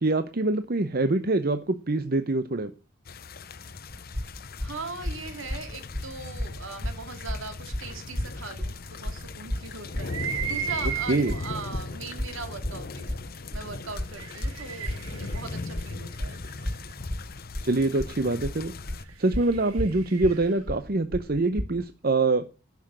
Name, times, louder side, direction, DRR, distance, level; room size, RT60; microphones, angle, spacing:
voice 1, 0.0-2.7 11.1-11.3 17.6-18.7 19.2-22.4, right 2 dB, 45° right, 10 dB, 0.7 m, -25 dB
sound 1, 3.0-19.0, left 3 dB, 45° left, 0.7 m, -39 dB
sound 2, 3.9-21.8, left 1 dB, 20° right, 2.3 m, -33 dB
voice 2, 4.6-13.2 13.5-16.4, right 4 dB, 65° right, 7 dB, 2.3 m, -40 dB
sound 3, 10.0-11.7 12.5-12.6 13.9-16.8 18.9-20.6, right 7 dB, 85° right, 1.8 m, -35 dB
11.5 x 6.0 x 7.4 m, 0.31 s
head